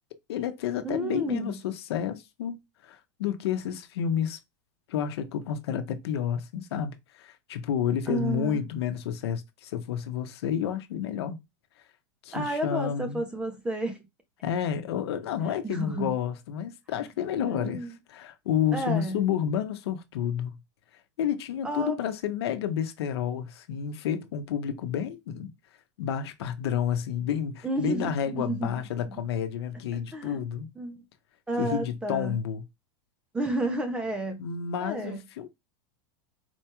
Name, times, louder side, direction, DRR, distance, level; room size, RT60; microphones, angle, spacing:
voice 1, 0.3-4.4 4.9-11.4 12.2-13.2 14.4-20.5 21.2-25.5 26.0-30.7 31.6-32.6 34.4-35.5, left 9 dB, 75° left, 0.8 m, -30 dB
voice 2, 0.8-1.5 8.1-8.6 12.3-14.0 15.4-16.1 17.4-18.0 18.7-19.2 21.6-21.9 27.6-28.7 30.1-30.4 30.8-31.0 31.5-32.3 33.3-34.4 34.8-35.2, right 2 dB, 5° right, 0.5 m, -31 dB
4.4 x 2.3 x 2.9 m
supercardioid pair, 175°, 14 cm